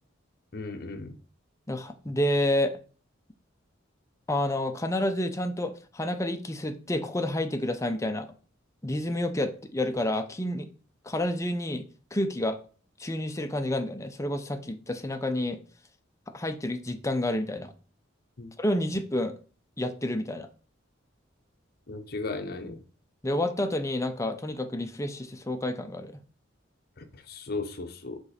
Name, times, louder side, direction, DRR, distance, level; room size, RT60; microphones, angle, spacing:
voice 1, 0.5-1.2 18.4-18.5 21.9-22.8 27.0-28.2, left 3 dB, 50° left, 7 dB, 0.8 m, -36 dB
voice 2, 1.7-2.8 4.3-8.3 8.8-10.7 11.0-12.6 13.0-15.6 16.3-17.7 18.6-19.3 19.8-20.5 23.2-26.1, left 1 dB, 15° left, 7 dB, 0.6 m, -29 dB
5.2 x 4.1 x 5.0 m, 0.40 s
head